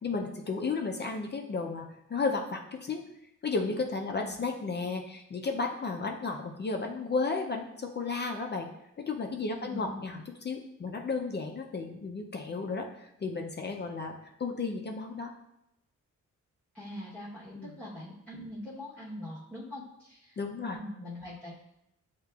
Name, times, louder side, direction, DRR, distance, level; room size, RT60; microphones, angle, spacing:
voice 1, 0.0-3.0 3.4-8.7 9.0-14.1 14.4-15.3 17.5-17.7 20.4-20.8, left 4 dB, 35° left, 2 dB, 0.4 m, -33 dB
voice 2, 9.6-10.2 16.7-20.4 20.7-21.5, left 1 dB, 5° left, -9 dB, 0.9 m, -43 dB
8.0 x 2.8 x 2.3 m, 0.83 s
wide cardioid pair, 145°, 31 cm